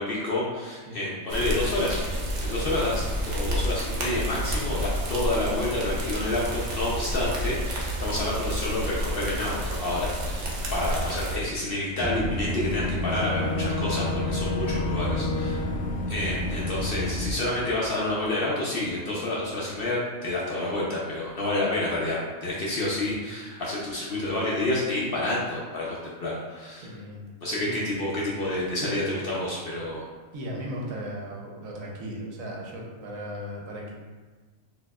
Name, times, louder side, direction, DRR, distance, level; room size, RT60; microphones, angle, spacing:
voice 1, 0.0-2.0 2.4-15.6 16.1-26.9 27.4-30.0, left 1 dB, 55° left, -6 dB, 0.7 m, -29 dB
voice 2, 0.9-1.2 26.8-27.2 27.6-28.1 30.3-33.9, equal, 80° right, -1 dB, 1.1 m, -37 dB
sound 1, 1.3-11.4, equal, 55° right, 0.5 m, -30 dB
Boat Water vehicle / Engine, 12.0-17.3, left 1 dB, 15° left, 0.3 m, -28 dB
4.4 x 2.7 x 2.3 m, 1.4 s
omnidirectional pair, 1.4 m